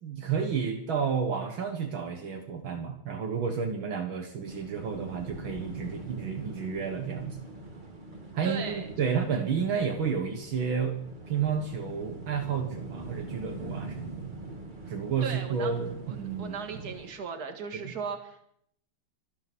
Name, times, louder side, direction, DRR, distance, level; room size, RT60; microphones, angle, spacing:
voice 1, 0.0-7.4 8.3-11.0 11.3-14.3 14.9-16.9 17.8-17.9, right 6 dB, 70° right, 3 dB, 2.2 m, -31 dB
sound 1, 4.4-17.1, right 2 dB, 20° right, 2.2 m, -43 dB
voice 2, 8.4-9.2 9.7-9.9 15.2-15.7 16.1-18.4, right 6 dB, 50° right, 5 dB, 2.4 m, -37 dB
24.5 x 8.8 x 6.2 m, 0.69 s
omnidirectional pair, 2.3 m